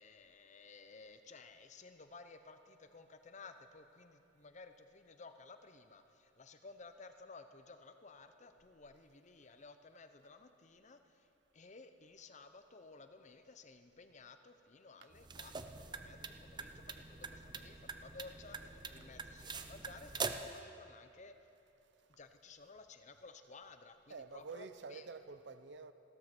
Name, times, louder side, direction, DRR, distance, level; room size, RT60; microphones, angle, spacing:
voice 1, 0.0-11.3 11.5-21.3 22.1-25.1, left 3 dB, 40° left, 8 dB, 0.8 m, -56 dB
sound 1, 15.1-20.6, right 4 dB, 25° right, 0.6 m, -44 dB
voice 2, 24.1-25.9, right 4 dB, 65° right, 12 dB, 0.7 m, -48 dB
15.5 x 13.0 x 6.1 m, 2.7 s
head